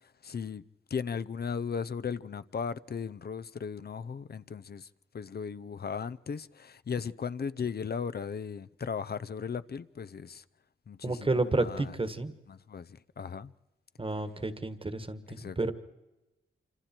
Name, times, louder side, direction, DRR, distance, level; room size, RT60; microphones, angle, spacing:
voice 1, 0.2-0.6 0.9-4.9 5.1-10.4 10.9-11.9 12.5-13.5 15.4-15.7, left 6 dB, 50° left, 0.7 m, -37 dB
voice 2, 11.0-12.3 14.0-15.7, right 2 dB, 25° right, 1.6 m, -31 dB
27.5 x 25.5 x 4.5 m
cardioid pair, 75°, 20 cm